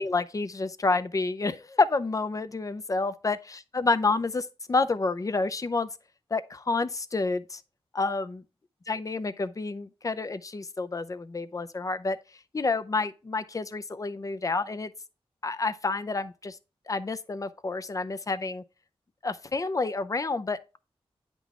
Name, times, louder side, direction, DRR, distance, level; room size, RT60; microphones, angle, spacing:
voice 1, 0.0-3.4 3.7-5.9 6.3-7.6 7.9-8.4 8.9-12.2 12.5-14.9 15.4-16.6 16.9-18.6 19.2-20.8, left 3 dB, 35° left, 0.5 m, -29 dB
9.4 x 3.8 x 3.5 m
wide cardioid pair, 95°, 10 cm